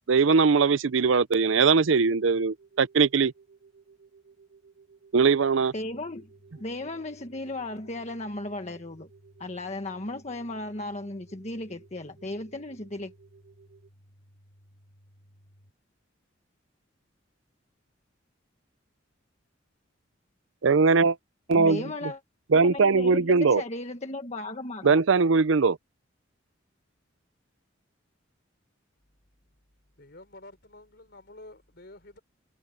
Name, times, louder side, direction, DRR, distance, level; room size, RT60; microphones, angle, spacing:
voice 1, 0.1-3.3 5.1-5.7 20.6-21.2 21.5-21.9 22.5-23.6 24.8-25.8, right 4 dB, 80° right, 0.6 m, -21 dB
sound 1, 1.9-13.9, right 5 dB, 45° right, 1.8 m, -57 dB
sound 2, 5.7-15.7, equal, 80° left, 4.6 m, -59 dB
voice 2, 5.7-6.3 6.6-9.1 9.4-13.1 21.5-22.2 22.5-25.0, left 2 dB, 35° left, 1.5 m, -35 dB
voice 3, 29.9-32.2, left 2 dB, 55° left, 4.5 m, -49 dB
head